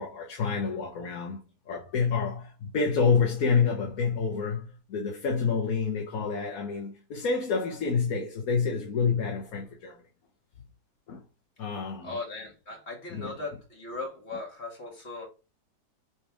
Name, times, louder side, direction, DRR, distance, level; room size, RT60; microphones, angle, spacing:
voice 1, 0.0-10.0 11.1-11.2 11.6-12.2 13.1-13.3, left 5 dB, 60° left, 1.5 m, -28 dB
voice 2, 12.0-15.3, left 3 dB, 40° left, 2.4 m, -38 dB
6.5 x 3.5 x 4.7 m
omnidirectional pair, 1.8 m